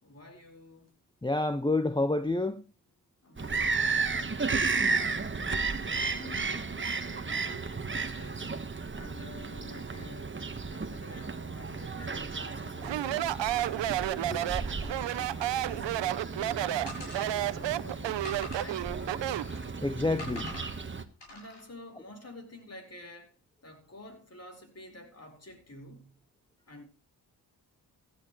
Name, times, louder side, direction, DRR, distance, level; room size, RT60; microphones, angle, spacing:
voice 1, 0.0-0.9 3.2-4.4 4.7-5.3 5.8-8.5 8.9-10.4 10.7-13.4 13.7-16.6 16.9-18.9 21.3-23.4 23.6-26.1 26.7-26.8, left 1 dB, 35° left, 4.4 m, -49 dB
voice 2, 1.2-2.6 19.8-20.5, left 2 dB, 10° left, 0.7 m, -28 dB
Bird vocalization bird call bird song, 3.4-21.0, right 4 dB, 25° right, 1.3 m, -34 dB
Speech, 12.8-19.6, right 13 dB, 85° right, 0.7 m, -31 dB
sound 1, 16.9-17.6 18.2-19.7 20.2-20.7 21.2-21.6, left 1 dB, 75° left, 8.0 m, -45 dB
16.0 x 13.5 x 3.1 m
cardioid pair, 75°, 42 cm